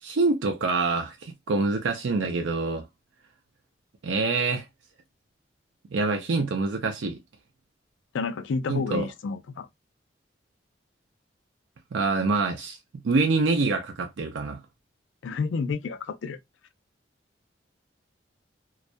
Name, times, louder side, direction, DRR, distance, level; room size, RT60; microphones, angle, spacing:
voice 1, 0.0-2.9 4.0-4.7 5.9-7.2 8.7-9.1 11.9-12.8 13.0-14.6, right 3 dB, 85° right, 0.4 m, -25 dB
voice 2, 8.1-9.7 15.2-16.4, left 4 dB, 90° left, 0.4 m, -30 dB
2.3 x 2.1 x 2.5 m
head